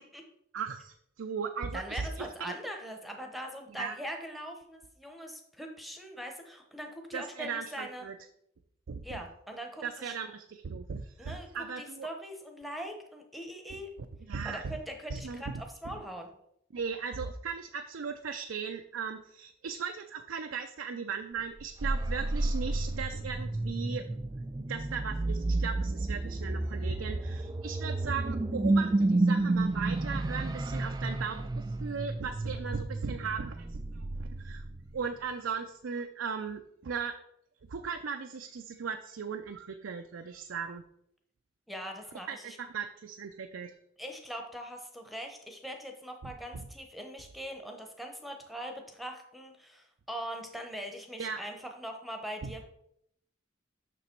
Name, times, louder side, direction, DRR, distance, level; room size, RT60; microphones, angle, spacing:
voice 1, 0.5-2.5 3.7-4.0 7.1-8.2 8.9-9.2 9.8-12.1 14.2-14.8 15.1-16.0 16.7-24.1 24.7-34.6 34.9-37.1 37.7-40.8 42.3-43.8 46.2-46.3 51.2-51.4 52.4-52.5, right 6 dB, 80° right, 6 dB, 0.5 m, -37 dB
voice 2, 1.7-8.1 9.0-10.2 11.2-11.5 11.8-13.9 14.4-16.3 41.7-42.6 44.0-52.6, equal, ahead, 3 dB, 0.9 m, -41 dB
sound 1, 21.6-35.1, right 2 dB, 20° right, 0.3 m, -31 dB
6.8 x 5.9 x 4.5 m, 0.74 s
head